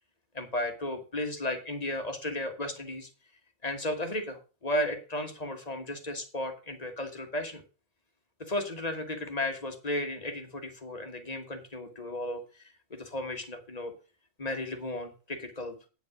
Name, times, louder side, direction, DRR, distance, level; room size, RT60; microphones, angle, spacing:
voice 1, 0.3-3.1 3.6-7.6 8.4-12.4 12.9-13.9 14.4-15.8, left 1 dB, 30° left, 5 dB, 1.5 m, -34 dB
9.2 x 5.2 x 6.0 m, 0.33 s
omnidirectional pair, 1.4 m